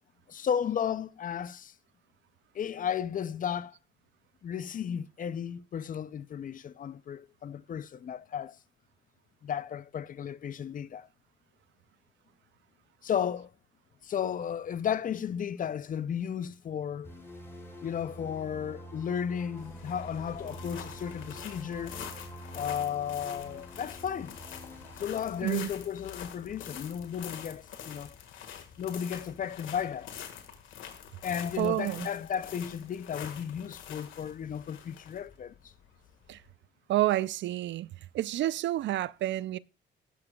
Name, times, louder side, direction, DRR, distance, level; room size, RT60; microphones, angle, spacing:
voice 1, 0.3-1.7 2.5-3.8 4.4-8.6 9.4-11.1 13.0-13.5 14.0-17.1 17.8-22.0 22.5-24.4 25.0-28.2 28.8-30.1 31.2-35.7, left 8 dB, 45° left, 0.5 m, -34 dB
sound 1, 17.0-25.4, equal, 10° left, 3.4 m, -46 dB
sound 2, 19.6-36.5, left 9 dB, 80° left, 1.7 m, -46 dB
voice 2, 31.6-32.1 36.3-36.4 36.9-37.9 38.1-39.6, right 14 dB, 70° right, 0.4 m, -29 dB
18.0 x 6.9 x 2.3 m
cardioid pair, 90°, 20 cm